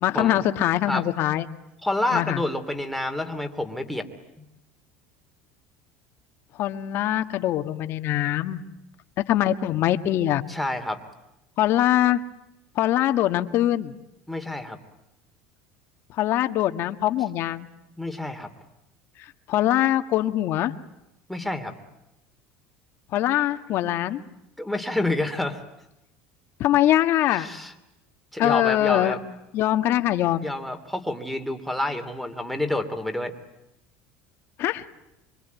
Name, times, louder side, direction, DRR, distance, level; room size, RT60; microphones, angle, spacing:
voice 1, 0.0-1.5 2.1-2.4 6.6-8.6 9.3-10.4 11.6-12.2 12.7-13.9 16.2-17.7 19.5-20.7 23.1-24.2 26.6-27.5 28.4-29.1 29.5-30.5 34.6-34.8, left 13 dB, 50° left, 8 dB, 1.6 m, -22 dB
voice 2, 1.8-4.0 4.4-4.5 10.5-11.0 14.3-14.8 18.0-18.5 21.3-21.7 24.6-25.6 27.2-27.7 28.3-29.2 30.4-33.3, left 1 dB, ahead, 4 dB, 2.8 m, -28 dB
25.5 x 25.0 x 9.4 m, 0.89 s
cardioid pair, 135°, 5 cm